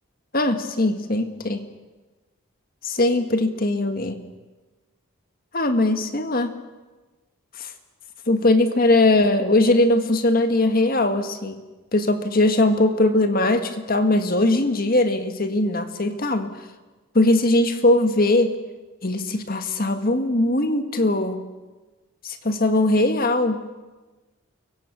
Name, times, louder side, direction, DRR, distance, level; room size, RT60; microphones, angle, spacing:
voice 1, 0.3-1.6 2.8-4.3 5.5-6.5 7.6-7.7 8.3-11.6 11.9-16.6 17.1-18.5 19.0-21.5 22.2-23.6, left 2 dB, 45° left, 7 dB, 1.7 m, -20 dB
29.0 x 23.5 x 6.2 m, 1.2 s
head